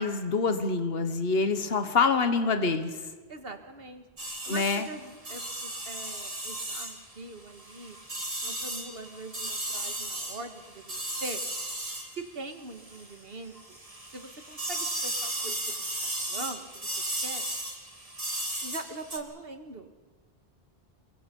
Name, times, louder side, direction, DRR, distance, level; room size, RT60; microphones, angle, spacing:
voice 1, 0.0-3.0 4.5-4.9, left 4 dB, 70° left, 8 dB, 1.5 m, -26 dB
voice 2, 3.3-4.0 4.4-8.0 8.4-11.4 12.1-13.8 14.1-15.8 16.2-16.9 17.2-17.5 18.6-19.9, right 2 dB, 70° right, 6 dB, 2.0 m, -42 dB
sound 1, 4.2-13.2 13.5-19.2, right 1 dB, 35° right, 2.8 m, -35 dB
28.5 x 23.5 x 5.4 m, 1.3 s
omnidirectional pair, 1.0 m